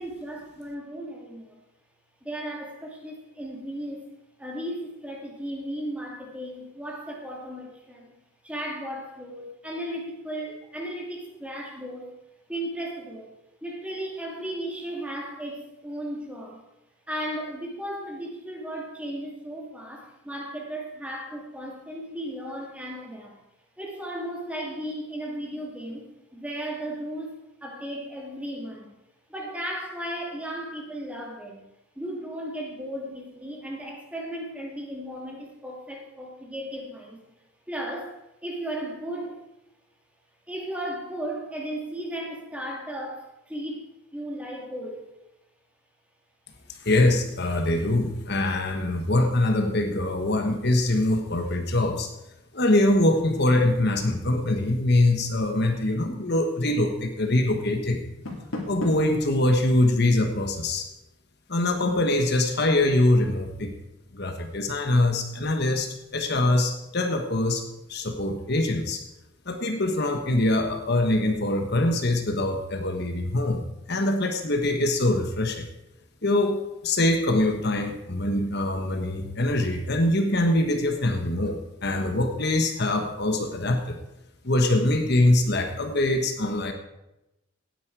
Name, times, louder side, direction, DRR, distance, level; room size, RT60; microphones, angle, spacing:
voice 1, 0.0-1.6 2.2-4.1 4.4-12.1 12.5-13.3 13.6-16.6 17.1-23.4 23.8-28.9 29.3-31.6 32.0-37.2 37.7-39.4 40.5-45.0, right 1 dB, 5° right, -1 dB, 2.5 m, -35 dB
voice 2, 46.7-52.1 52.5-58.0 58.7-60.9 61.5-63.7 64.1-69.1 69.5-75.7 76.2-84.0 84.4-86.7, left 1 dB, 50° left, 5 dB, 1.3 m, -23 dB
Door, 58.0-59.2, left 2 dB, 85° left, 2.9 m, -34 dB
17.5 x 9.6 x 4.7 m, 0.92 s
head